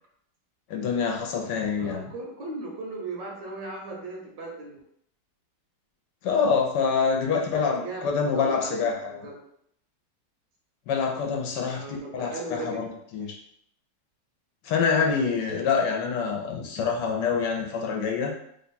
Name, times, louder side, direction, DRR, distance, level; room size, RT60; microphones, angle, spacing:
voice 1, 0.7-2.1 6.2-9.2 10.9-12.9 13.1-13.4 14.6-18.4, left 5 dB, 75° left, 1 dB, 1.2 m, -26 dB
voice 2, 1.8-4.8 7.5-9.4 11.7-12.8, right 2 dB, 85° right, 0 dB, 1.6 m, -37 dB
3.5 x 2.2 x 4.0 m, 0.71 s
omnidirectional pair, 1.9 m